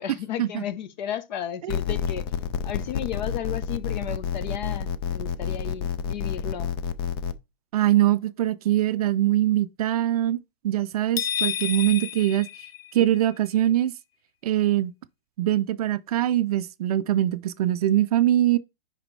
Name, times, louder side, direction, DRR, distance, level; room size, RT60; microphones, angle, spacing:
voice 1, 0.0-2.3 2.6-6.7, left 10 dB, 50° left, 1.0 m, -34 dB
sound 1, 1.7-7.3, left 7 dB, 25° left, 0.4 m, -29 dB
voice 2, 7.7-12.5 12.9-13.9 14.4-14.9 15.4-18.6, right 13 dB, 40° right, 0.5 m, -23 dB
sound 2, 11.2-13.3, left 9 dB, 80° left, 0.6 m, -30 dB
10.0 x 4.1 x 3.2 m
hypercardioid pair, 145°, 29 cm